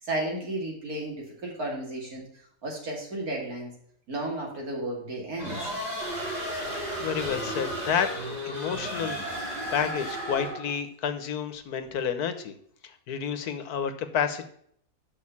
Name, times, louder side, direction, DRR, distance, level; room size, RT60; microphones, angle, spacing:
voice 1, 0.0-2.3 2.6-3.7 4.1-5.6, right 1 dB, 70° right, -1 dB, 3.0 m, -33 dB
sound 1, 5.4-10.7, equal, 30° right, 4.6 m, -33 dB
voice 2, 6.7-8.1 8.4-12.5 12.8-14.5, left 7 dB, 75° left, 9 dB, 1.4 m, -30 dB
6.5 x 5.6 x 7.0 m, 0.65 s
omnidirectional pair, 1.6 m